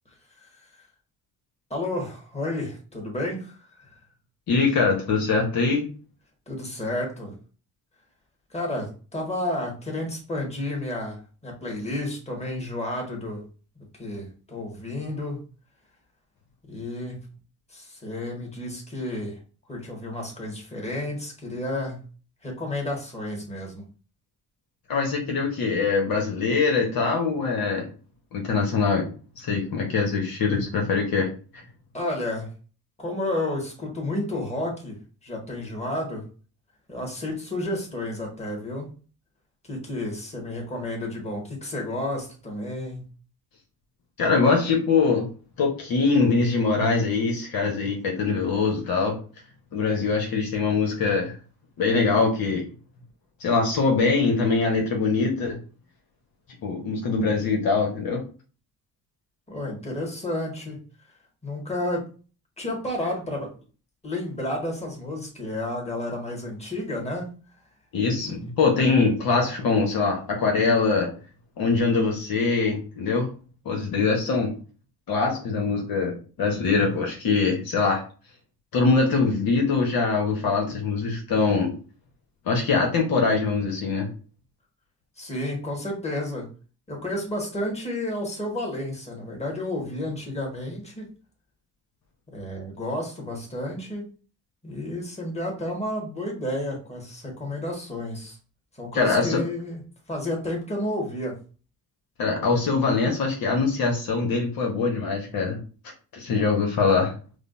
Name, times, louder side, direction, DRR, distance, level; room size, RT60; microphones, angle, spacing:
voice 1, 1.7-3.5 6.5-7.3 8.5-13.4 14.0-15.4 16.7-17.2 17.7-19.4 19.7-22.0 22.4-23.8 31.9-32.5 33.0-35.0 35.2-36.2 36.9-38.9 39.7-43.0 59.5-60.8 61.4-62.1 62.6-63.5 64.0-67.3 68.1-68.3 85.2-86.5 86.9-91.1 92.3-94.1 94.6-98.4 98.8-99.8 100.1-101.4, left 1 dB, 15° left, -1 dB, 1.6 m, -31 dB
voice 2, 4.5-5.9 24.9-27.9 28.3-29.1 29.4-31.3 44.2-45.3 45.6-49.2 49.7-51.3 51.8-52.6 53.4-55.6 56.6-58.2 67.9-71.1 71.6-73.3 73.6-74.5 75.1-78.0 78.7-81.7 82.5-84.1 98.9-99.4 102.2-105.6 106.1-107.1, left 4 dB, 65° left, 1 dB, 1.0 m, -23 dB
4.9 x 2.0 x 2.5 m, 0.37 s
supercardioid pair, 65°, 38 cm